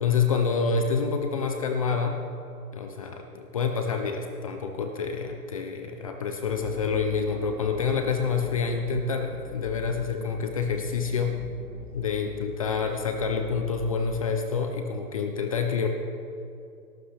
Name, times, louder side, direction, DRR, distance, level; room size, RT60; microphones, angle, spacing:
voice 1, 0.0-2.2 2.7-11.4 11.9-15.9, left 5 dB, 25° left, 5 dB, 0.4 m, -27 dB
sound 1, 6.5-14.1, left 3 dB, 65° left, 2.9 m, -41 dB
18.5 x 12.0 x 3.4 m, 2.7 s
hypercardioid pair, 135°, 48 cm